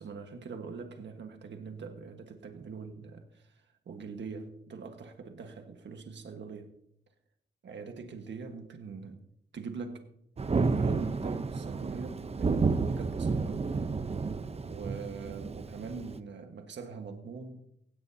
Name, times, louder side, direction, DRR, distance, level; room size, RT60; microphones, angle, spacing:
voice 1, 0.0-6.7 7.6-9.2 9.5-10.1 10.5-13.7 14.6-17.6, right 5 dB, 80° right, 5 dB, 1.5 m, -43 dB
Thunder, 10.4-16.2, right 4 dB, 35° right, 0.7 m, -31 dB
17.0 x 16.5 x 2.8 m, 0.73 s
wide cardioid pair, 110°, 18 cm